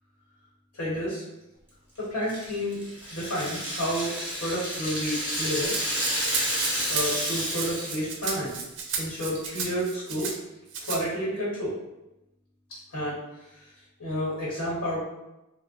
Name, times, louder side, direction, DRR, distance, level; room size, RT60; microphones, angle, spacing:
voice 1, 0.7-1.2 2.1-2.8 3.1-4.1 4.4-5.8 6.9-8.6 9.0-10.3 10.8-11.7 12.9-13.2 14.0-15.0, equal, 75° left, -8 dB, 1.1 m, -30 dB
Rattle (instrument), 2.3-8.1 8.4-8.5 8.9-9.4, equal, 10° right, 1.2 m, -30 dB
Rattle (instrument) 2, 5.6-10.3 10.7-11.0, right 5 dB, 55° right, 0.4 m, -33 dB
3.8 x 2.1 x 2.5 m, 0.93 s
head